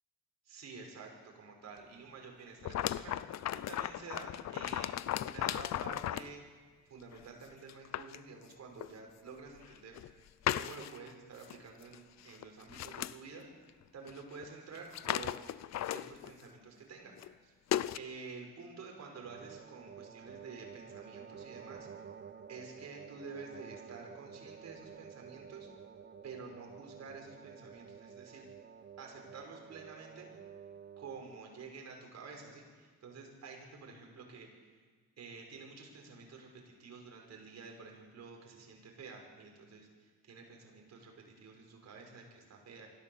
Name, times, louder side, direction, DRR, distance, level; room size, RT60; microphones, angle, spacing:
voice 1, 0.4-6.5 6.9-10.0 10.5-13.5 13.9-15.5 15.8-17.1 17.4-17.5 18.0-21.9 22.5-25.7 26.2-28.4 29.0-30.3 31.0-34.7 35.2-42.9, right 4 dB, 60° right, 1 dB, 5.7 m, -50 dB
sound 1, 2.6-6.3 7.1-7.2 7.7-8.2 8.8-8.9 9.6-10.1 10.5-11.1 11.4-11.6 11.8-12.0 12.3-13.1 14.1-14.2 14.4-14.5 14.7-16.4 17.2-17.3 17.7-18.0, left 12 dB, 60° left, 0.6 m, -36 dB
sound 2, 19.2-31.5, right 7 dB, 35° right, 1.1 m, -51 dB
23.5 x 15.5 x 7.3 m, 1.5 s
cardioid pair, 90°, 30 cm